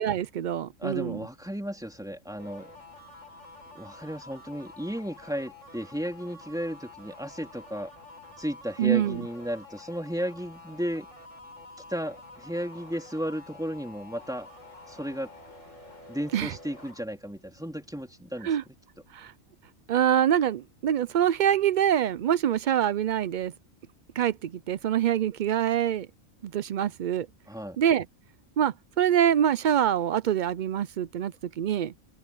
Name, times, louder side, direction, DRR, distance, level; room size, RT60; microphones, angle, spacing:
voice 1, 0.0-1.2 8.8-9.2 16.3-16.5 18.4-18.6 19.1-19.3 19.9-23.5 24.2-26.1 26.4-27.3 27.8-28.1 28.6-31.9, right 10 dB, 85° right, 0.4 m, -25 dB
voice 2, 0.8-2.7 3.7-7.9 8.4-11.1 11.9-14.5 14.9-15.3 16.1-18.8 27.5-27.8, equal, 5° right, 3.2 m, -34 dB
sound 1, 2.4-17.0, left 2 dB, 70° left, 7.6 m, -49 dB
omnidirectional pair, 1.4 m